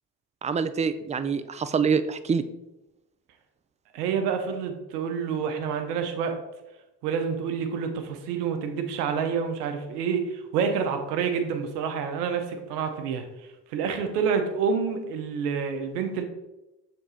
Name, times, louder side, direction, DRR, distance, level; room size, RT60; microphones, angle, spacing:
voice 1, 0.4-2.4, right 6 dB, 15° right, 12 dB, 0.4 m, -25 dB
voice 2, 3.9-6.4 7.0-13.2 13.7-16.2, right 6 dB, 85° right, 6 dB, 0.8 m, -28 dB
6.6 x 3.8 x 4.2 m, 0.97 s
hypercardioid pair, 50°, 46 cm